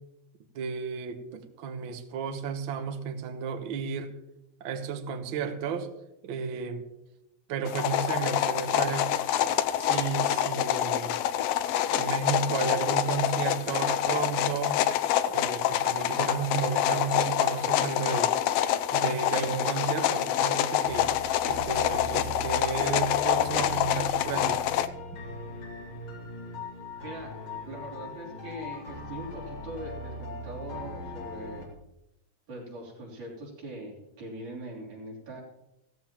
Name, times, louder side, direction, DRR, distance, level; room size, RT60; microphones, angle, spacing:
voice 1, 0.5-4.1 4.6-5.9 6.2-6.8 7.5-9.1 9.8-11.2 11.9-14.9 15.3-18.3 18.9-21.1 21.4-24.6, right 6 dB, 60° right, 6 dB, 1.4 m, -33 dB
sound 1, 7.7-24.9, left 11 dB, 85° left, 1.4 m, -26 dB
sound 2, 20.8-31.6, left 2 dB, 40° left, 3.3 m, -39 dB
voice 2, 27.0-27.4 27.7-31.7 32.5-35.4, right 1 dB, 90° right, -4 dB, 5.0 m, -41 dB
15.5 x 14.5 x 3.0 m, 0.91 s
omnidirectional pair, 3.5 m